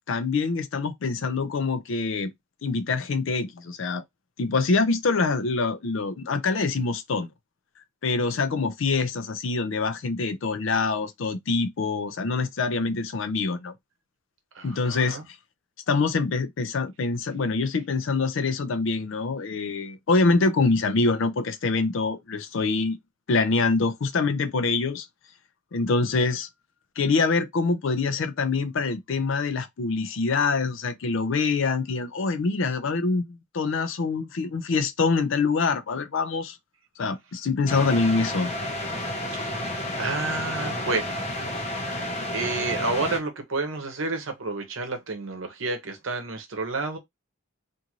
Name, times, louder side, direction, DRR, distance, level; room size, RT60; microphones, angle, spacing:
voice 1, 0.1-2.3 2.6-4.0 4.4-7.3 8.0-13.7 14.6-15.2 15.9-23.0 23.3-25.1 25.7-26.5 27.0-36.6 37.0-38.5, left 4 dB, 65° left, 0.5 m, -25 dB
voice 2, 14.5-15.3 39.3-41.2 41.6-41.8 42.3-47.0, right 3 dB, 70° right, 0.8 m, -30 dB
sound 1, 37.7-43.2, left 1 dB, 30° left, 0.7 m, -31 dB
2.6 x 2.5 x 3.0 m
head